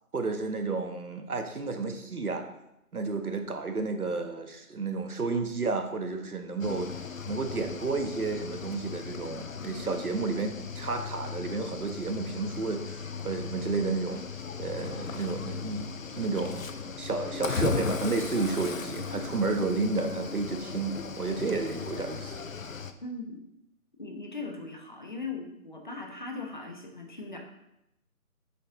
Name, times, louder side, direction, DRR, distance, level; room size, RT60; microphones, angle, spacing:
voice 1, 0.1-2.5 2.9-6.9 7.3-14.2 14.6-15.9 16.2-16.6 17.0-22.4, right 3 dB, 75° right, 6 dB, 1.3 m, -31 dB
Cricket / Waves surf, 6.6-22.9, left 5 dB, 65° left, 0.7 m, -37 dB
voice 2, 23.0-23.4 24.0-27.4, left 3 dB, 35° left, 2 dB, 0.9 m, -39 dB
8.3 x 5.8 x 3.8 m, 0.84 s
figure-of-eight pair, 170°, 44 cm